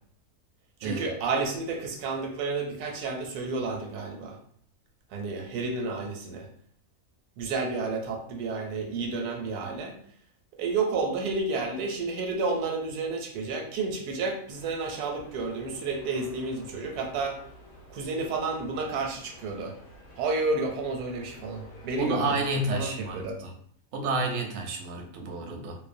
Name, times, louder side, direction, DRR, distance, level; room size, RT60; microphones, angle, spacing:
voice 1, 0.8-4.4 5.1-6.5 7.4-10.0 10.6-17.4 17.9-19.7 20.2-22.4 22.7-23.4, right 3 dB, 85° right, 2 dB, 1.1 m, -31 dB
sound 1, 14.5-23.3, left 1 dB, 65° left, 0.7 m, -50 dB
voice 2, 22.0-23.5 23.9-25.8, right 2 dB, 65° right, 2 dB, 0.7 m, -30 dB
2.6 x 2.0 x 2.5 m, 0.64 s
omnidirectional pair, 1.6 m